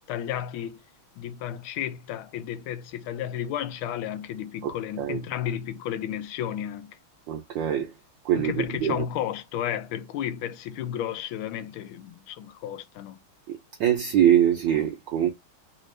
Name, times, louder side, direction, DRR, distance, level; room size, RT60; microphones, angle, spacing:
voice 1, 0.1-0.8 1.2-7.0 8.4-13.2, left 10 dB, 80° left, 1.4 m, -33 dB
voice 2, 7.3-7.9 8.2-9.0 13.5-15.3, right 10 dB, 70° right, 1.2 m, -23 dB
3.6 x 2.4 x 3.2 m
omnidirectional pair, 2.4 m